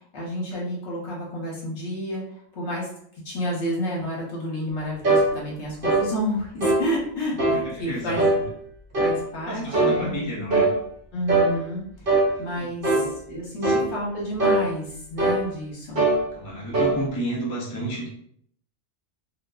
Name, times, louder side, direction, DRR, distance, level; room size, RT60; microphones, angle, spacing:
voice 1, 0.0-2.2 2.5-2.9 3.2-8.5 9.0-10.2 11.1-12.1 12.4-13.0 13.3-16.0, equal, 65° left, -3 dB, 1.1 m, -30 dB
sound 1, 5.0-5.3 5.8-6.1 6.6-6.9 7.4-7.6 8.2-8.4 8.9-9.2 9.7-10.0 10.5-10.7 11.3-11.5 12.1-12.3 12.8-13.1 13.6-13.9 14.4-14.6 15.2-15.4 16.0-16.2 16.7-17.0, right 2 dB, 55° right, 0.8 m, -20 dB
voice 2, 7.5-8.2 9.5-10.7 12.6-13.1 13.6-13.9 16.3-18.1, right 1 dB, 25° left, -4 dB, 0.4 m, -31 dB
2.5 x 2.4 x 2.3 m, 0.67 s
omnidirectional pair, 1.3 m